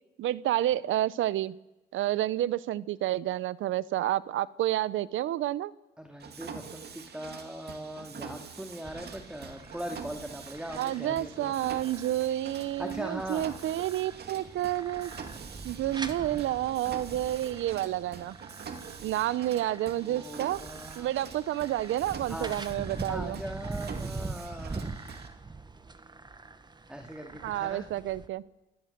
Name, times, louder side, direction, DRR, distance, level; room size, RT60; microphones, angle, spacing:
voice 1, 0.2-1.5 1.9-5.7 6.5-6.6 10.8-15.1 15.6-18.4 19.0-20.6 21.0-23.4 27.4-28.4, right 13 dB, 80° right, 19 dB, 0.8 m, -30 dB
voice 2, 6.0-11.5 12.8-13.5 16.2-16.4 20.0-21.1 22.3-22.6 23.1-25.0 26.9-27.9, right 1 dB, 5° right, 4 dB, 2.3 m, -40 dB
Mechanisms, 6.2-25.3, right 6 dB, 55° right, 2.4 m, -45 dB
sound 1, 8.8-28.3, right 3 dB, 20° right, 1.6 m, -43 dB
28.0 x 17.5 x 6.8 m, 1.1 s
cardioid pair, 90°, 20 cm